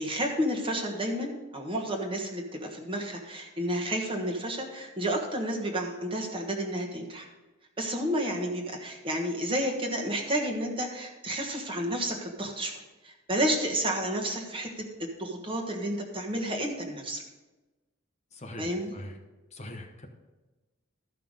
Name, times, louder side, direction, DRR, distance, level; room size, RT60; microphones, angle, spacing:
voice 1, 0.0-7.3 7.8-14.7 15.0-17.2 18.6-18.9, right 1 dB, 25° right, 1 dB, 1.3 m, -31 dB
voice 2, 18.3-19.1 19.5-20.1, left 1 dB, 30° left, 3 dB, 0.9 m, -42 dB
13.5 x 5.7 x 5.2 m, 1.2 s
head